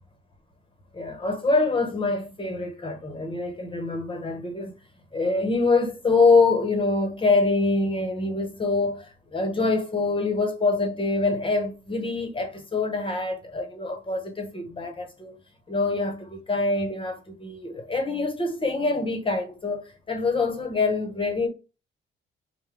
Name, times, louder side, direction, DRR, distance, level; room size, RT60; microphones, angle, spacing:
voice 1, 0.9-4.7 5.1-15.4 15.7-21.5, left 3 dB, 25° left, 0.9 m, -25 dB
3.5 x 2.2 x 3.2 m
cardioid pair, 90°, 20 cm